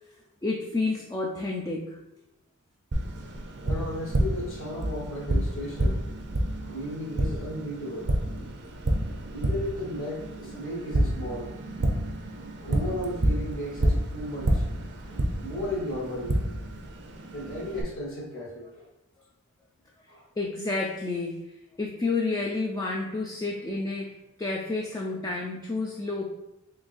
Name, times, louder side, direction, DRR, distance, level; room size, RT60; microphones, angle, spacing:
voice 1, 0.4-2.0 8.5-8.6 9.0-9.3 20.4-21.4 21.8-26.4, left 3 dB, 15° left, -1 dB, 0.3 m, -30 dB
Tap, 2.9-17.8, right 1 dB, 50° right, 0.5 m, -29 dB
voice 2, 3.6-6.0 6.6-8.1 9.1-11.5 12.6-14.6 15.1-16.4 17.3-18.8 20.1-20.2, left 1 dB, 65° left, -4 dB, 1.2 m, -35 dB
3.8 x 3.3 x 2.5 m, 0.88 s
head